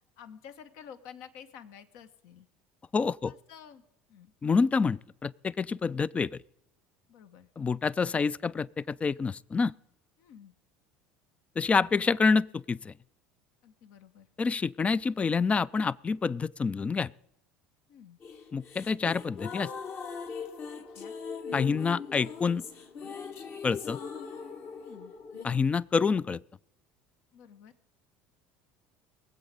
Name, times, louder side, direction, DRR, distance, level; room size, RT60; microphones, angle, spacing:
voice 1, 0.0-2.5 3.3-3.8 4.1-4.3 7.1-7.5 10.2-10.5 13.6-14.3 17.9-18.2 20.9-21.2 24.7-25.1 27.3-27.7, left 8 dB, 65° left, 1.3 m, -50 dB
voice 2, 2.9-3.3 4.4-6.4 7.6-9.7 11.6-12.9 14.4-17.1 18.5-19.7 21.5-22.6 23.6-24.0 25.4-26.4, left 5 dB, 25° left, 0.4 m, -27 dB
sound 1, 18.2-25.4, left 5 dB, 50° left, 1.8 m, -40 dB
22.0 x 7.8 x 5.2 m
hypercardioid pair, 80°, 5 cm